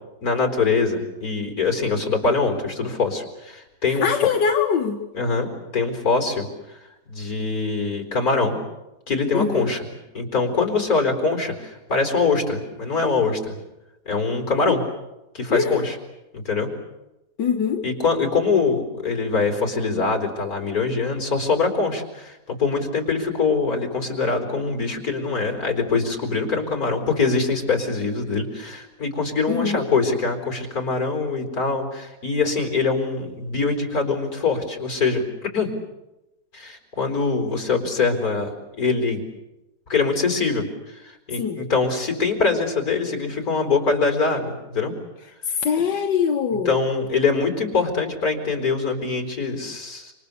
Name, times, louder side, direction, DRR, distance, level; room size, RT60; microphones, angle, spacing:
voice 1, 0.2-4.1 5.1-6.8 7.1-8.6 9.1-9.8 10.1-13.5 14.1-14.8 15.3-15.9 16.3-16.7 17.8-35.2 35.5-35.7 36.5-38.5 38.8-39.3 39.9-44.9 46.7-50.1, left 4 dB, 55° left, 5 dB, 4.7 m, -23 dB
voice 2, 3.9-5.0 9.3-9.7 14.7-14.8 15.5-15.8 17.4-17.9 29.5-29.9 41.4-41.7 45.5-46.8, left 6 dB, 85° left, 3 dB, 1.9 m, -23 dB
28.5 x 26.5 x 6.9 m, 0.96 s
omnidirectional pair, 1.8 m